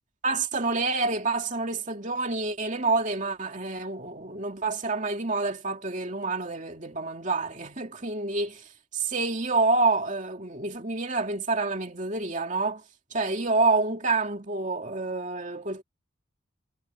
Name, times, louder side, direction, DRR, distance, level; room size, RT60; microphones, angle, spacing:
voice 1, 0.2-8.6 8.9-12.8 13.1-15.8, right 3 dB, 35° right, 2.6 m, -28 dB
head